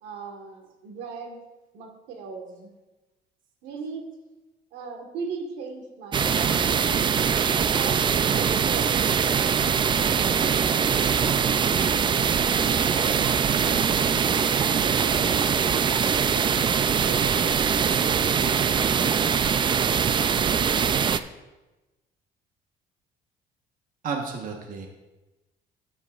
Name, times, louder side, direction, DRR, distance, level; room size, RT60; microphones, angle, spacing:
voice 1, 0.0-1.4 1.7-2.7 3.6-4.0 4.7-6.6 7.6-11.9 12.5-13.9 14.8-19.2, right 4 dB, 85° right, 3 dB, 1.5 m, -40 dB
sound 1, 6.1-21.2, right 7 dB, 30° right, 0.3 m, -22 dB
voice 2, 24.0-24.9, right 5 dB, 55° right, 2 dB, 1.2 m, -31 dB
12.5 x 8.4 x 2.4 m, 1.1 s
cardioid pair, 110°, 17 cm